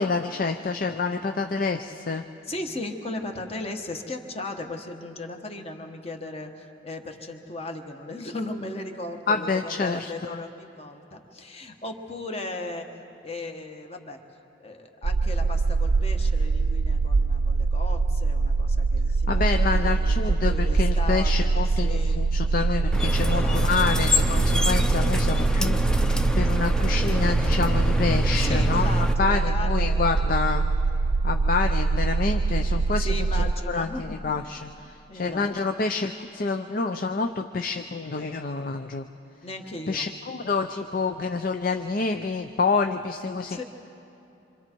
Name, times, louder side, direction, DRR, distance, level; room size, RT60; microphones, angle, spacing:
voice 1, 0.0-2.2 9.3-10.4 19.3-28.9 29.2-30.6 31.2-33.1 33.7-39.1 39.9-43.6, left 4 dB, 50° left, 6 dB, 0.5 m, -28 dB
voice 2, 2.5-12.9 13.2-14.2 14.6-22.4 23.2-24.1 28.3-30.2 32.9-34.2 35.1-35.5 39.4-40.1 43.3-43.6, left 2 dB, 35° left, 4 dB, 1.3 m, -37 dB
sound 1, 15.0-33.5, right 3 dB, 50° right, 0.4 m, -23 dB
sound 2, 22.9-29.1, left 1 dB, 5° left, 0.6 m, -26 dB
27.0 x 25.0 x 4.5 m, 2.9 s
head